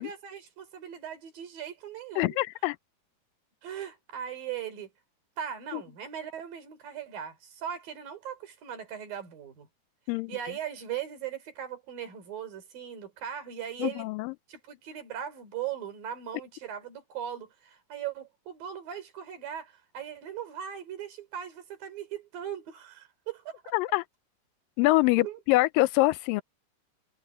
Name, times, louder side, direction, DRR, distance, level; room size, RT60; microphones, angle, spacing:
voice 1, 0.0-2.4 3.6-4.9 5.4-9.7 10.3-14.1 14.5-23.8 25.2-25.4, right 9 dB, 90° right, 5.2 m, -39 dB
voice 2, 2.2-2.8 5.7-5.8 10.1-10.3 13.8-14.3 23.7-24.0 24.8-26.4, left 20 dB, 90° left, 2.3 m, -25 dB
omnidirectional pair, 3.9 m